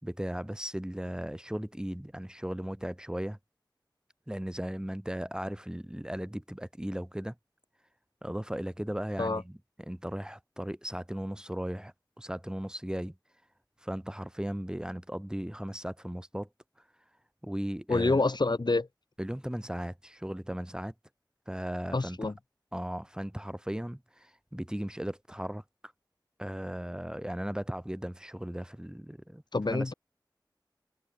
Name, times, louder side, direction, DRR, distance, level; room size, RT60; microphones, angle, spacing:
voice 1, 0.0-3.4 4.3-7.3 8.2-13.1 13.8-16.5 17.4-18.2 19.2-20.9 21.5-22.3 22.7-25.9 26.4-29.4 29.7-29.9, equal, 10° right, 2.4 m, -37 dB
voice 2, 17.9-18.9 21.9-22.3 29.5-29.9, left 3 dB, 70° left, 6.6 m, -27 dB
wide cardioid pair, 50°, 8 cm